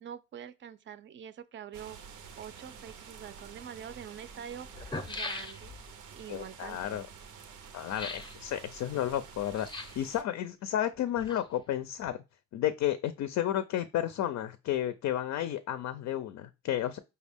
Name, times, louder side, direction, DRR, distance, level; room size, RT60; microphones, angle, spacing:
voice 1, 0.0-2.0 2.4-5.7 6.1-7.0, right 9 dB, 40° right, 0.5 m, -45 dB
sound 1, 1.7-10.2, right 6 dB, 85° right, 0.7 m, -49 dB
sound 2, 3.4-3.5 4.3-4.4 4.7-5.9 7.9-8.4 9.5-10.1 10.9-11.7 12.0-12.1, left 3 dB, 15° left, 0.5 m, -40 dB
voice 2, 6.3-7.1 7.7-12.2 12.5-17.0, left 11 dB, 65° left, 0.4 m, -32 dB
5.1 x 2.3 x 3.4 m
cardioid pair, 90°, 30 cm